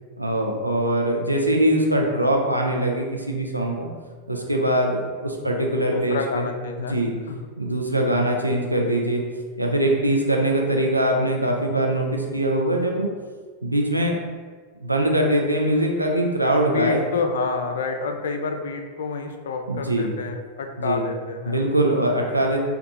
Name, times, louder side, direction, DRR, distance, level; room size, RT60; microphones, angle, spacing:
voice 1, 0.2-3.9 4.3-6.5 6.9-7.1 7.6-9.2 9.6-13.1 13.6-14.1 14.8-17.0 19.7-20.1 20.8-21.1 21.5-22.6, right 1 dB, 85° right, 0 dB, 0.4 m, -22 dB
voice 2, 5.4-7.0 7.3-7.4 8.0-8.3 16.7-21.6, left 4 dB, 60° left, 5 dB, 0.3 m, -29 dB
2.7 x 2.3 x 3.8 m, 1.5 s
figure-of-eight pair, 90°, 0 cm